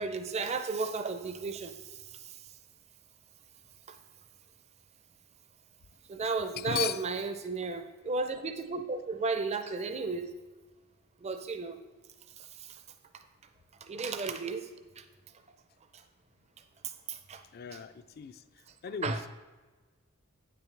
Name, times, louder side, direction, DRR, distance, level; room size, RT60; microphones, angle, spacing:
voice 1, 0.0-2.5 3.9-4.0 6.1-10.3 11.2-11.8 12.4-12.8 13.1-13.2 13.8-15.0 15.9-16.0 16.8-17.4 17.7-17.8 19.0-19.3, right 4 dB, 30° right, 8 dB, 0.4 m, -34 dB
voice 2, 6.6-7.0 17.5-18.4 18.8-19.3, left 9 dB, 45° left, 13 dB, 0.3 m, -36 dB
9.4 x 7.6 x 3.3 m, 1.3 s
head